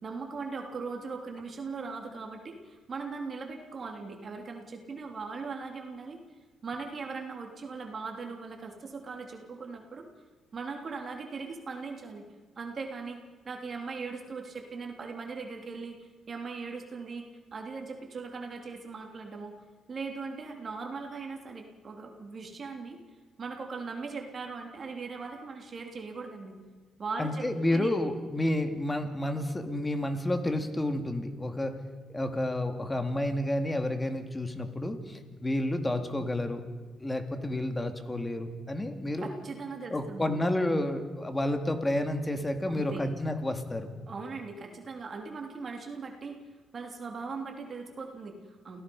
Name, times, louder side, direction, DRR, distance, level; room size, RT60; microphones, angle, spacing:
voice 1, 0.0-6.2 6.6-10.0 10.5-12.3 12.6-13.2 13.4-16.0 16.3-17.2 17.5-19.5 19.9-23.0 23.4-26.5 27.0-27.4 27.7-27.9 39.2-40.4 42.7-43.0 44.1-46.3 46.7-48.8, right 4 dB, 45° right, 2 dB, 3.3 m, -39 dB
voice 2, 27.2-31.8 32.1-36.6 37.0-39.3 39.9-43.9, left 1 dB, 15° left, 6 dB, 2.6 m, -30 dB
28.5 x 17.5 x 5.5 m, 1.4 s
cardioid pair, 90°, 0 cm